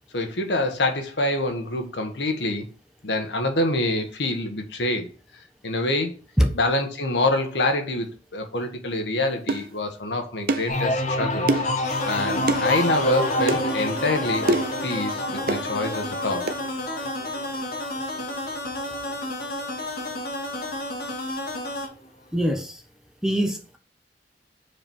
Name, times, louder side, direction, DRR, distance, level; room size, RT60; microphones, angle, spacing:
voice 1, 0.1-2.6 3.0-5.1 5.6-6.1 6.5-8.1 8.3-11.5 12.0-14.6 14.8-16.4, left 2 dB, 75° left, 1.3 m, -26 dB
sound 1, 9.5-9.7 10.5-10.7 11.5-11.8 12.5-12.7 13.5-13.6 14.5-14.8 15.5-15.7 16.5-16.6, right 2 dB, 55° right, 0.6 m, -24 dB
sound 2, 10.7-20.2 20.6-21.1, left 1 dB, 45° left, 1.0 m, -29 dB
sound 3, 11.8-21.9, left 1 dB, 60° left, 2.0 m, -32 dB
voice 2, 22.3-22.8 23.2-23.8, equal, 5° right, 0.7 m, -22 dB
4.9 x 4.6 x 5.4 m
head